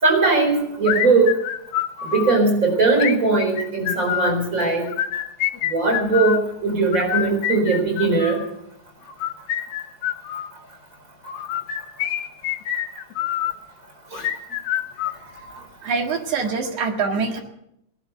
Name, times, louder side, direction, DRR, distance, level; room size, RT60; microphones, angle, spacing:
voice 1, 0.0-1.3 2.0-4.9 5.7-8.4 14.1-14.3, right 3 dB, 25° right, 3 dB, 4.3 m, -19 dB
sound 1, 0.8-2.4 2.9-4.4 4.9-6.4 6.9-8.5 9.1-10.5 11.2-13.6 14.1-15.6, left 11 dB, 75° left, 2.3 m, -26 dB
voice 2, 15.8-17.4, right 5 dB, 75° right, 4 dB, 3.2 m, -24 dB
18.5 x 11.5 x 6.8 m, 0.77 s
omnidirectional pair, 3.5 m